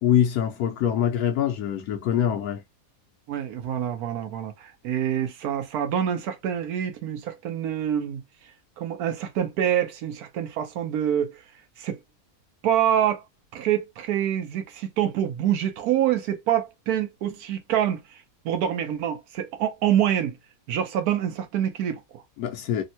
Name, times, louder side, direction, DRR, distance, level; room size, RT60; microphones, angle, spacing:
voice 1, 0.0-2.6 22.4-22.8, left 10 dB, 85° left, 1.2 m, -24 dB
voice 2, 3.3-8.2 8.8-11.4 11.8-12.0 12.6-13.2 13.5-20.4 20.7-22.2, right 10 dB, 85° right, 1.2 m, -26 dB
3.5 x 2.1 x 2.7 m
omnidirectional pair, 1.6 m